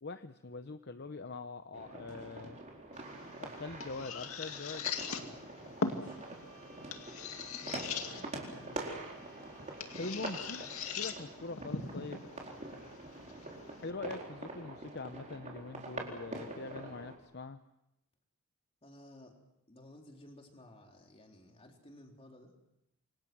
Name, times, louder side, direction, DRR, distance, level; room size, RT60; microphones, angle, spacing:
voice 1, 0.0-2.6 3.4-4.8 7.6-9.0 10.0-12.3 13.8-17.6, left 3 dB, 50° left, 9 dB, 0.8 m, -44 dB
sound 1, 1.7-17.2, right 2 dB, 35° right, 4.3 m, -45 dB
sound 2, 2.9-13.9, left 5 dB, 70° left, 2.4 m, -42 dB
voice 2, 5.1-6.2 10.0-10.3 12.8-13.0 18.8-19.4 19.7-22.5, left 1 dB, 25° left, 2 dB, 3.8 m, -55 dB
sound 3, 5.8-11.0, right 4 dB, 55° right, 5.8 m, -62 dB
28.0 x 24.0 x 6.2 m, 0.86 s
head